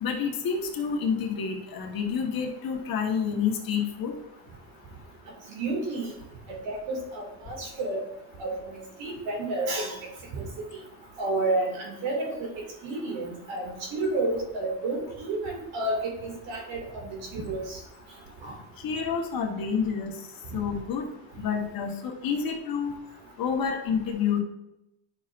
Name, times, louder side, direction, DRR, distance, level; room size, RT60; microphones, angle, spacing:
voice 1, 0.0-4.1 18.8-20.2 20.5-21.1 21.4-22.9 23.4-24.4, left 6 dB, 50° left, 1 dB, 1.5 m, -28 dB
voice 2, 5.5-6.1 6.5-8.0 8.4-10.0 10.3-10.5 11.2-12.5 12.8-17.8 18.4-18.6, right 2 dB, 85° right, 0 dB, 2.5 m, -30 dB
10.5 x 6.0 x 2.6 m, 0.88 s
cardioid pair, 140°, 44 cm